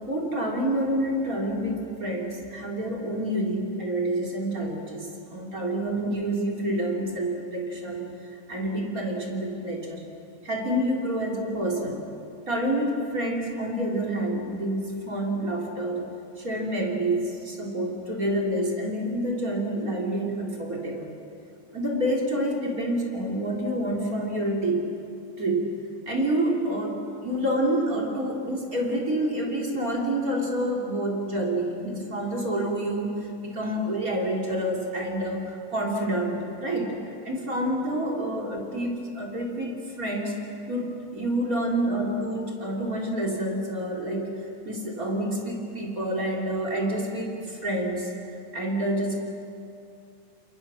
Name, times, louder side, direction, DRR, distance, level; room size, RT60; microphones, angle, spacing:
voice 1, 0.0-8.1 8.5-10.0 10.4-12.0 12.5-16.0 16.4-21.1 21.7-24.8 25.4-25.7 26.1-36.9 37.2-40.4 40.7-40.9 41.1-44.3 44.7-48.1 48.5-49.1, right 1 dB, 25° right, 0 dB, 3.7 m, -28 dB
30.0 x 27.5 x 6.4 m, 2.5 s
omnidirectional pair, 3.8 m